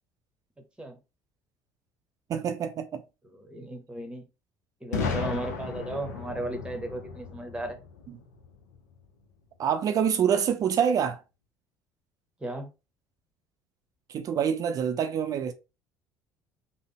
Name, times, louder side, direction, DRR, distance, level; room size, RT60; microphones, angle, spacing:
voice 1, 2.3-3.0 9.6-11.2 14.1-15.5, right 8 dB, 45° right, 0.4 m, -26 dB
voice 2, 3.2-4.2 4.8-7.8 12.4-12.7, right 1 dB, 10° right, 0.9 m, -35 dB
Boom, 4.9-8.8, left 5 dB, 80° left, 0.5 m, -35 dB
3.4 x 2.0 x 3.4 m
figure-of-eight pair, 60°, 9 cm